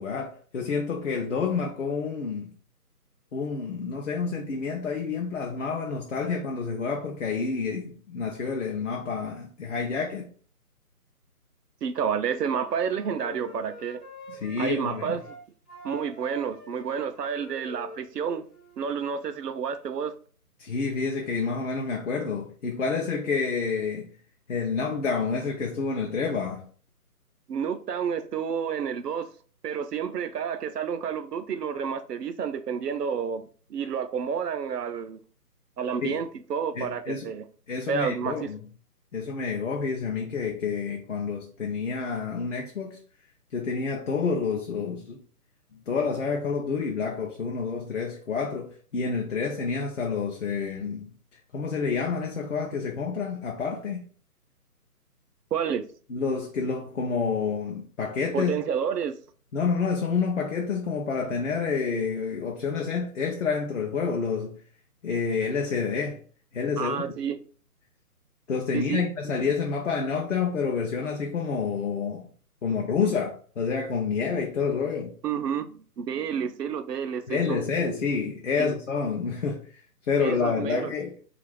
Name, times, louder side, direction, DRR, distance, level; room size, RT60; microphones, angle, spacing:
voice 1, 0.0-2.5 3.3-10.3 14.3-15.2 20.6-24.1 24.5-26.6 36.0-36.2 36.8-37.3 37.7-38.6 39.1-43.0 43.5-45.2 45.9-51.1 51.5-54.0 56.1-58.5 59.5-64.6 65.0-66.2 66.5-67.1 68.5-72.3 72.6-75.1 77.3-79.7 80.1-81.1, left 5 dB, 55° left, 0.5 m, -28 dB
voice 2, 11.8-14.0 14.6-15.4 15.8-18.4 18.8-20.1 27.5-29.3 29.6-35.2 35.8-37.4 37.9-38.5 55.5-55.8 58.3-59.2 66.8-67.4 68.7-69.1 72.7-73.1 75.2-77.6 78.6-78.7 80.2-80.9, right 7 dB, 80° right, 0.6 m, -30 dB
Wind instrument woodwind instrument, 12.4-15.4 15.7-19.0, left 1 dB, ahead, 0.4 m, -46 dB
2.4 x 2.4 x 3.4 m
figure-of-eight pair, 150°, 47 cm